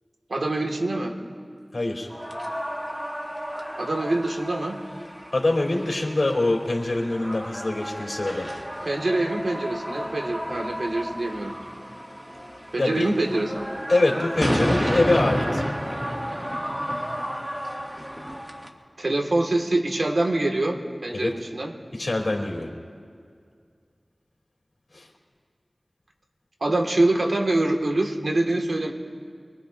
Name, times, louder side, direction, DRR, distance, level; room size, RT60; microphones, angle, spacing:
voice 1, 0.3-1.2 3.8-4.8 8.8-11.5 12.7-13.7 19.0-21.7 26.6-28.9, right 2 dB, 85° right, 2 dB, 1.8 m, -25 dB
voice 2, 1.7-2.1 5.3-8.5 12.8-13.1 13.9-15.6 21.1-21.3 22.0-22.7 24.9-25.1, left 2 dB, 80° left, 0 dB, 2.9 m, -24 dB
sound 1, 2.1-18.7, equal, 15° right, 1.9 m, -31 dB
24.5 x 21.5 x 2.6 m, 2.2 s
wide cardioid pair, 40°, 0 cm